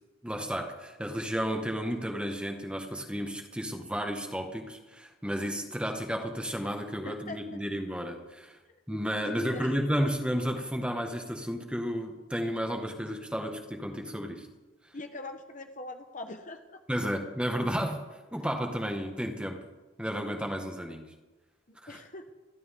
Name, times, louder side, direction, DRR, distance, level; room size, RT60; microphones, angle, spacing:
voice 1, 0.2-8.6 8.9-14.5 16.9-19.6 20.0-21.1 21.8-22.0, equal, 5° right, 3 dB, 1.8 m, -32 dB
voice 2, 7.0-7.4 8.9-9.7 14.9-16.8 21.7-22.3, left 2 dB, 40° left, 6 dB, 1.1 m, -42 dB
27.5 x 12.5 x 3.8 m, 1.1 s
head